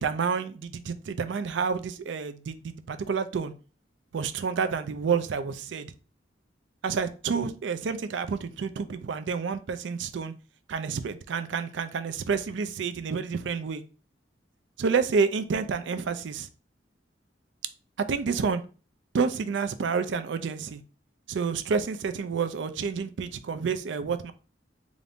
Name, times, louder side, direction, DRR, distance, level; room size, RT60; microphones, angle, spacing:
voice 1, 0.0-3.5 4.1-5.9 6.8-10.3 10.7-13.8 14.8-16.5 18.1-18.6 19.1-20.8 21.3-24.3, right 5 dB, 75° right, 0.4 m, -29 dB
3.9 x 2.5 x 3.4 m
head